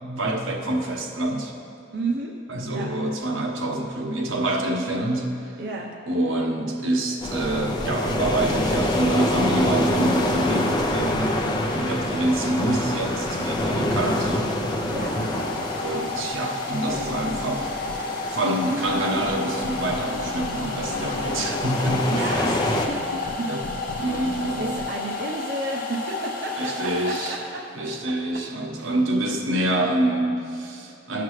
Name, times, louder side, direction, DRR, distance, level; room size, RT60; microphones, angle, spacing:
voice 1, 0.0-1.5 2.5-5.5 6.1-11.4 11.7-14.5 15.8-17.7 18.3-22.5 23.4-23.6 24.0-24.7 26.6-27.4 27.7-31.2, right 1 dB, 80° right, 1 dB, 1.1 m, -26 dB
voice 2, 1.9-2.3 2.6-3.0 5.6-5.9 14.9-15.3 22.0-23.5 23.8-23.9 24.6-28.1 28.8-29.0, right 2 dB, 50° right, -2 dB, 0.7 m, -32 dB
sound 1, 7.2-22.9, left 1 dB, 20° left, 0.6 m, -27 dB
Domestic sounds home sounds, 14.1-27.9, left 3 dB, 45° left, 1.0 m, -32 dB
sound 2, 16.9-18.1 18.4-24.9, left 2 dB, 60° left, 0.5 m, -36 dB
16.0 x 5.9 x 3.2 m, 2.7 s
head